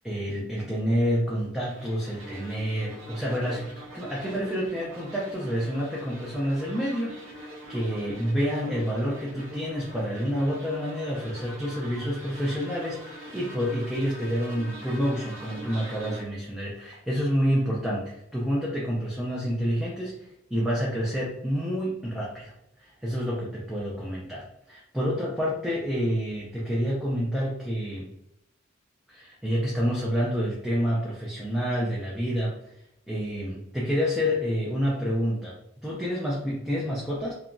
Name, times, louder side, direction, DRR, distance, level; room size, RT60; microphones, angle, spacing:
voice 1, 0.0-28.1 29.1-32.7 33.1-35.6 35.8-37.3, equal, ahead, -6 dB, 0.3 m, -28 dB
sound 1, 1.7-16.2, right 1 dB, 80° right, 0.7 m, -43 dB
2.8 x 2.2 x 2.5 m, 0.83 s
head